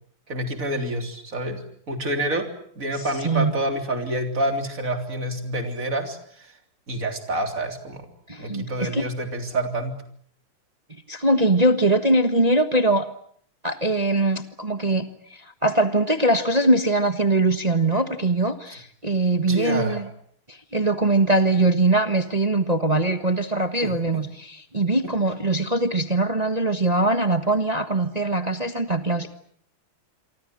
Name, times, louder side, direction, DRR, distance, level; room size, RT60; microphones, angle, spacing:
voice 1, 0.3-2.5 2.8-6.2 6.9-8.1 8.4-10.0 19.4-20.0 23.8-24.2 25.0-25.1, right 1 dB, 40° right, 6 dB, 3.8 m, -28 dB
voice 2, 3.0-3.5 8.3-9.1 11.1-13.1 13.6-15.0 15.3-20.1 20.5-29.3, right 2 dB, 20° right, 8 dB, 1.2 m, -22 dB
27.5 x 24.5 x 7.7 m, 0.62 s
omnidirectional pair, 2.4 m